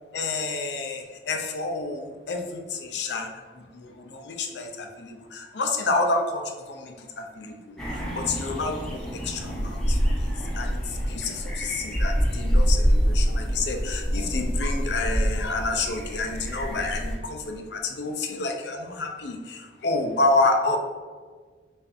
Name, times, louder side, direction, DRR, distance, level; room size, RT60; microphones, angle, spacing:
voice 1, 0.1-3.3 3.5-20.8, left 3 dB, 70° left, 3 dB, 0.5 m, -29 dB
sound 1, 7.8-17.2, equal, 5° left, 0.7 m, -26 dB
5.5 x 2.5 x 2.6 m, 1.5 s
head